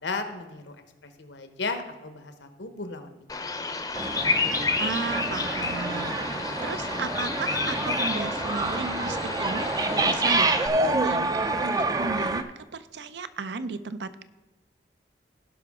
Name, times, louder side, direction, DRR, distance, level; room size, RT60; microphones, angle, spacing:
voice 1, 0.0-0.8 1.0-3.5, left 3 dB, 85° left, 7 dB, 1.1 m, -35 dB
Bird vocalization bird call bird song, 3.3-10.7, left 4 dB, 20° left, 0.6 m, -30 dB
sound 1, 3.9-12.4, right 2 dB, 20° right, 0.4 m, -28 dB
voice 2, 4.7-14.2, right 4 dB, 70° right, 13 dB, 0.5 m, -34 dB
17.5 x 5.8 x 3.6 m, 1.1 s
head